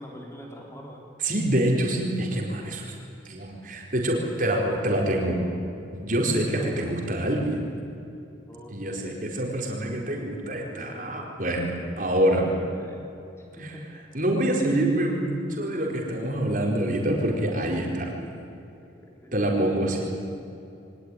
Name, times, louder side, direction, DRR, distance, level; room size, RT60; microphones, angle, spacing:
voice 1, 0.0-1.1 6.6-6.9 8.5-9.2 12.3-13.0 13.6-14.0 19.2-19.3, equal, 15° left, 0 dB, 4.0 m, -43 dB
voice 2, 1.2-2.9 3.2-5.4 5.9-7.6 8.7-12.4 14.1-18.1 19.3-20.0, right 1 dB, 45° right, 0 dB, 4.5 m, -26 dB
23.5 x 19.0 x 9.9 m, 2.7 s
head